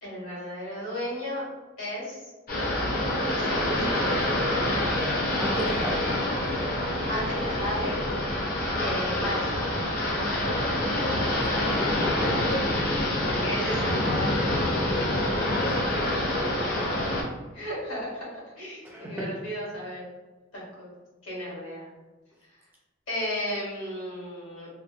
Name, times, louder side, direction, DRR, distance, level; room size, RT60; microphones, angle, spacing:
voice 1, 0.0-1.5 1.8-2.2 3.3-5.1 7.1-8.0 8.8-9.6 13.2-16.3 17.5-20.0 20.5-20.9 21.2-21.9 23.1-24.7, equal, 85° left, -6 dB, 1.3 m, -35 dB
sound 1, 2.5-17.2, left 1 dB, 45° left, 0.5 m, -26 dB
voice 2, 5.4-6.0 11.5-12.4 15.4-15.9 18.8-19.3, equal, 10° right, -3 dB, 0.3 m, -34 dB
2.8 x 2.1 x 2.3 m, 1.2 s
head